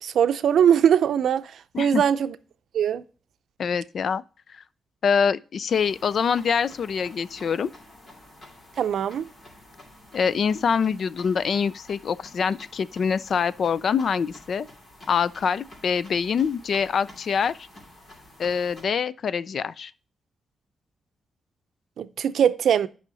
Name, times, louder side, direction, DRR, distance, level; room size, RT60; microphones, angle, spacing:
voice 1, 0.0-1.4 1.8-2.3 2.7-3.0 8.8-9.3 22.0-22.9, right 8 dB, 75° right, 0.5 m, -21 dB
voice 2, 3.6-4.2 5.0-7.7 10.1-14.7 15.1-17.6 18.4-19.9, left 6 dB, 55° left, 0.4 m, -25 dB
sound 1, 5.7-18.8, left 1 dB, 35° left, 2.7 m, -49 dB
9.0 x 5.7 x 4.0 m
wide cardioid pair, 155°, 0 cm